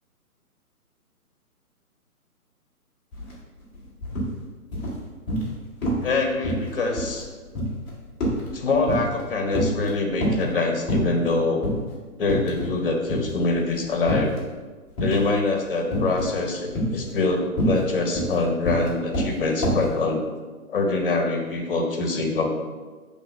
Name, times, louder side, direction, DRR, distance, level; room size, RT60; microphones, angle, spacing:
sound 1, 3.1-3.3 3.6-4.3 4.7-5.6 5.8-6.2 6.4-9.2 9.5-10.5 10.9-11.3 11.6-11.8 12.2-12.8 13.1-14.4 15.0-15.4 15.9-16.4 16.7-19.9, equal, 10° left, 0.8 m, -26 dB
voice 1, 6.0-7.3 8.5-11.7 12.2-14.3 15.0-20.2 20.7-22.5, left 3 dB, 35° left, 3 dB, 1.0 m, -24 dB
5.9 x 3.4 x 5.3 m, 1.4 s
figure-of-eight pair, 140°, 45 cm